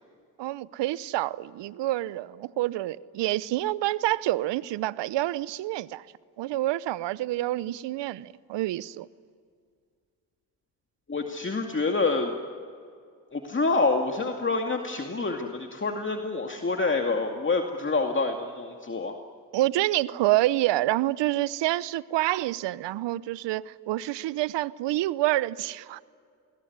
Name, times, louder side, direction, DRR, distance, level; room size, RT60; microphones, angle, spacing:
voice 1, 0.4-6.0 6.4-9.1 19.5-26.0, right 16 dB, 70° right, 0.8 m, -27 dB
voice 2, 11.1-12.3 13.3-19.2, left 3 dB, 25° left, 2.3 m, -27 dB
26.5 x 21.0 x 9.5 m
hypercardioid pair, 50°, 45 cm